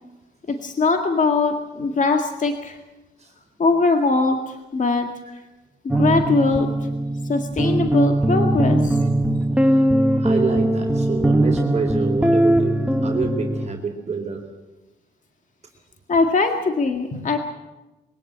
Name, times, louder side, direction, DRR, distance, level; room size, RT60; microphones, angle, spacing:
voice 1, 0.5-2.8 3.6-5.2 5.8-6.7 7.3-9.0 9.5-9.6 16.1-17.4, left 3 dB, 40° left, 5 dB, 1.9 m, -21 dB
sound 1, 5.9-13.7, right 1 dB, 5° right, 1.2 m, -20 dB
voice 2, 9.4-14.4, right 4 dB, 35° right, 2 dB, 4.1 m, -28 dB
22.5 x 17.0 x 8.7 m, 1.1 s
cardioid pair, 90°, 20 cm